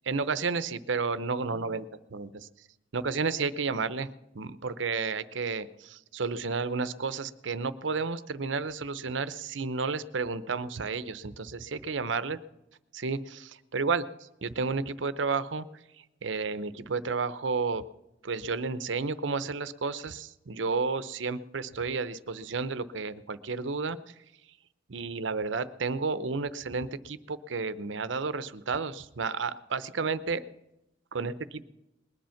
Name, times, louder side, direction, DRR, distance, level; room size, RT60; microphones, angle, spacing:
voice 1, 0.1-2.5 2.9-4.1 4.3-12.4 12.9-14.1 14.4-15.7 16.2-17.8 18.2-24.0 24.9-30.4 31.1-31.6, right 4 dB, 80° right, 14 dB, 0.7 m, -31 dB
20.0 x 10.5 x 5.8 m, 0.91 s
head